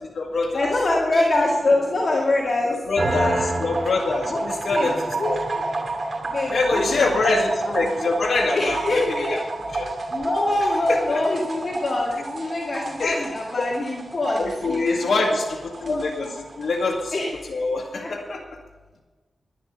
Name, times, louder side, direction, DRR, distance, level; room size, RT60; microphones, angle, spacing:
voice 1, 0.0-0.7 2.9-5.4 6.5-9.4 9.7-9.9 10.9-11.2 13.0-13.7 14.4-16.3 16.6-17.2 17.4-18.4, left 3 dB, 75° left, -3 dB, 1.7 m, -25 dB
voice 2, 0.5-2.8 3.1-3.5 4.3-4.4 4.7-4.9 5.2-5.3 6.3-7.8 8.5-9.4 10.1-15.3 15.8-16.3 17.1-17.6 17.9-18.1, left 2 dB, 45° left, -4 dB, 2.2 m, -24 dB
sound 1, 3.0-17.1, right 2 dB, 55° right, 2.5 m, -30 dB
11.5 x 10.5 x 6.8 m, 1.3 s
wide cardioid pair, 135°, 0 cm